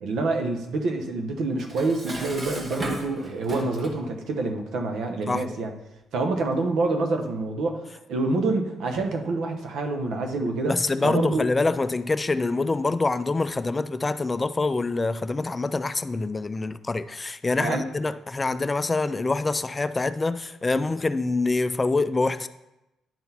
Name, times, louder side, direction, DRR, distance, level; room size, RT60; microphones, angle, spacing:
voice 1, 0.0-5.7 6.1-10.8 11.0-11.5 17.6-17.9, right 3 dB, 75° right, 0.9 m, -27 dB
Dishes pots and pans, 1.6-4.1, right 1 dB, 35° right, 1.2 m, -36 dB
voice 2, 10.6-22.5, left 3 dB, 25° left, 0.3 m, -25 dB
10.5 x 3.9 x 4.2 m
cardioid pair, 90°, 0 cm